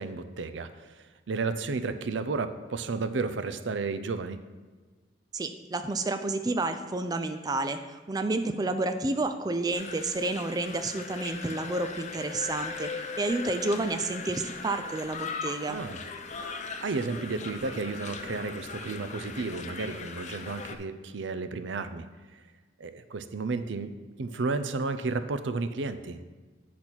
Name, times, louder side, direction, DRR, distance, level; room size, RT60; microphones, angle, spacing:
voice 1, 0.0-4.4 15.7-16.0 16.4-22.1 22.8-23.9 24.2-26.2, right 3 dB, 80° right, 11 dB, 0.5 m, -32 dB
voice 2, 5.3-15.8, right 2 dB, 20° right, 8 dB, 0.4 m, -30 dB
sound 1, 9.7-20.8, left 4 dB, 40° left, 0.6 m, -39 dB
8.7 x 4.2 x 6.0 m, 1.4 s
head